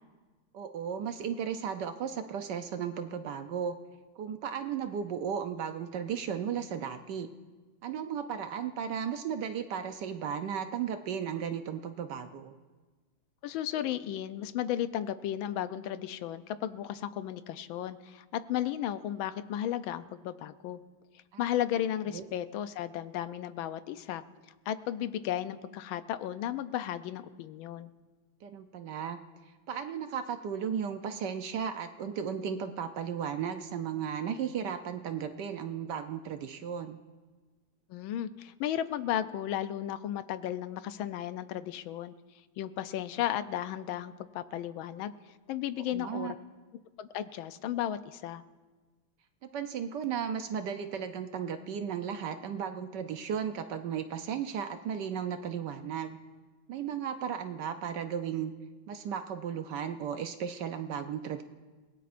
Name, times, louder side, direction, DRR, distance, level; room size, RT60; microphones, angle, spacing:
voice 1, 0.5-3.8 4.2-7.3 7.8-12.5 21.3-21.5 22.1-22.2 28.4-29.2 29.7-37.0 45.9-46.3 49.4-56.2 56.7-58.5 58.9-61.4, right 8 dB, 70° right, 8 dB, 1.1 m, -35 dB
voice 2, 13.4-20.8 21.4-24.2 24.7-27.9 37.9-42.1 42.6-45.1 45.5-46.4 47.0-48.4, left 11 dB, 75° left, 12 dB, 1.4 m, -34 dB
29.5 x 17.5 x 2.6 m, 1.3 s
omnidirectional pair, 2.3 m